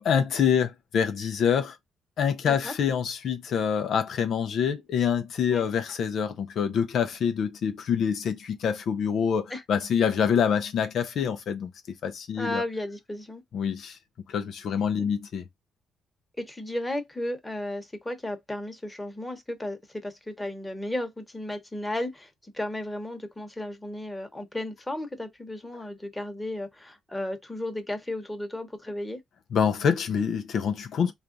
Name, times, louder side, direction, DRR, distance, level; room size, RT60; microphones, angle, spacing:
voice 1, 0.0-1.8 2.2-11.7 12.0-12.6 13.5-14.0 14.3-15.4 29.5-31.1, left 7 dB, 65° left, 0.5 m, -26 dB
voice 2, 12.4-13.4 15.0-15.1 16.4-29.2, left 1 dB, 10° left, 1.0 m, -34 dB
3.3 x 2.4 x 3.8 m
cardioid pair, 90°, 0 cm